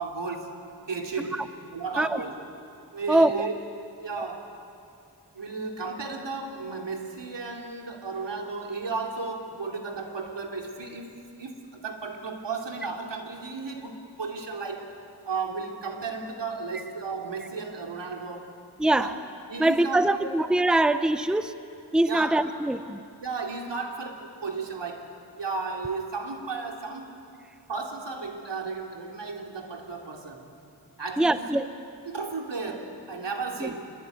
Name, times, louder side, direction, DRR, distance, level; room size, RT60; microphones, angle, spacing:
voice 1, 0.0-2.3 2.9-3.6 3.8-4.5 5.3-15.0 15.2-18.5 18.9-19.2 19.5-20.3 22.0-22.4 23.2-27.2 27.7-30.5 31.0-31.6 32.1-33.9, right 4 dB, 85° right, 2 dB, 3.2 m, -34 dB
voice 2, 3.1-3.5 4.2-4.3 18.8-19.1 19.6-21.5 21.9-23.0 31.2-31.7 33.6-33.7, right 1 dB, ahead, 11 dB, 0.8 m, -23 dB
27.0 x 22.5 x 9.4 m, 2.5 s
wide cardioid pair, 90°, 42 cm